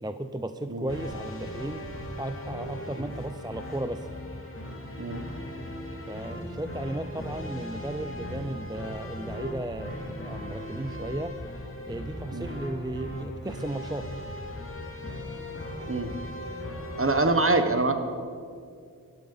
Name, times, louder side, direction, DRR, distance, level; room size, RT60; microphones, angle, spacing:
voice 1, 0.0-1.8 2.2-4.1 6.1-14.1, right 1 dB, 10° right, 9 dB, 0.5 m, -35 dB
sound 1, 0.9-17.2, left 1 dB, 35° left, 2.7 m, -38 dB
voice 2, 17.0-17.9, right 2 dB, 40° right, 7 dB, 1.4 m, -24 dB
16.5 x 12.0 x 5.5 m, 2.3 s
wide cardioid pair, 55°, 35 cm